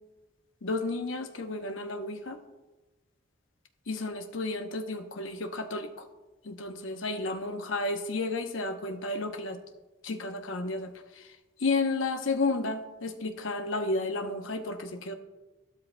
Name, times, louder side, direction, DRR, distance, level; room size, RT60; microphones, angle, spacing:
voice 1, 0.6-2.4 3.9-5.9 6.4-9.6 10.0-11.3 11.6-15.1, left 3 dB, 90° left, 6 dB, 0.8 m, -32 dB
13.0 x 12.5 x 2.2 m, 1.2 s
head